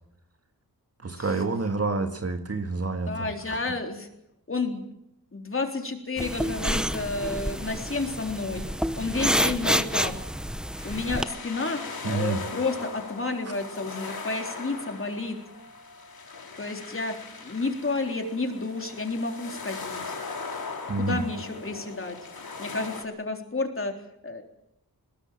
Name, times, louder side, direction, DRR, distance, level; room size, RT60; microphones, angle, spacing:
voice 1, 1.0-3.6 12.0-12.4 20.9-21.2, right 3 dB, 40° right, 6 dB, 1.9 m, -28 dB
voice 2, 3.1-4.1 4.5-4.9 5.3-8.6 9.0-10.2 10.8-15.4 16.6-17.1 17.4-20.2 21.0-22.2 22.6-23.9 24.2-24.4, left 3 dB, 35° left, 4 dB, 3.8 m, -31 dB
sound 1, 6.2-11.2, equal, ahead, 1.0 m, -28 dB
sound 2, 10.8-23.0, left 4 dB, 75° left, 4.6 m, -39 dB
22.5 x 21.0 x 7.6 m, 0.80 s
wide cardioid pair, 115°, 37 cm